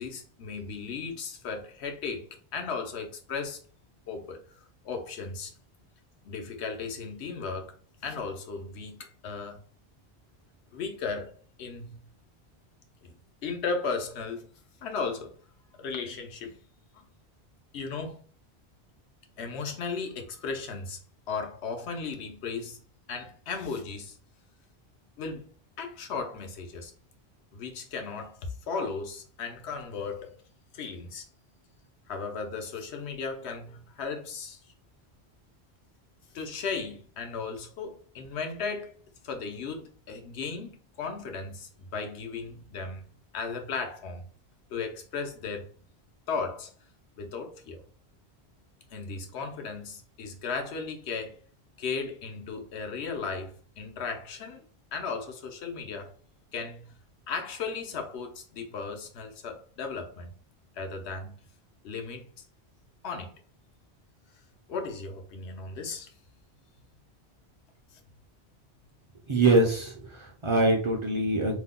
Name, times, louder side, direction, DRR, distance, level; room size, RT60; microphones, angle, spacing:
voice 1, 0.0-3.6 4.1-4.4 4.8-5.5 6.2-7.7 8.0-9.0 9.2-9.6 10.7-11.3 11.6-12.0 13.0-13.1 13.4-14.5 14.8-15.3 15.8-16.6 16.9-17.0 17.7-18.2 19.4-21.0 21.3-22.8 23.1-24.2 25.2-25.5 25.8-26.9 27.5-28.4 28.7-30.3 30.7-31.3 32.1-34.6 36.3-38.9 39.2-43.1 43.3-44.3 44.7-45.7 46.3-46.7 47.2-47.8 48.9-51.3 51.8-54.6 54.9-56.1 56.5-56.9 57.3-60.3 60.8-61.4 61.8-62.3 63.0-63.3 64.7-66.1, left 4 dB, 80° left, 1.0 m, -35 dB
voice 2, 69.3-71.6, right 2 dB, 45° right, 0.4 m, -24 dB
2.7 x 2.1 x 3.6 m
omnidirectional pair, 1.1 m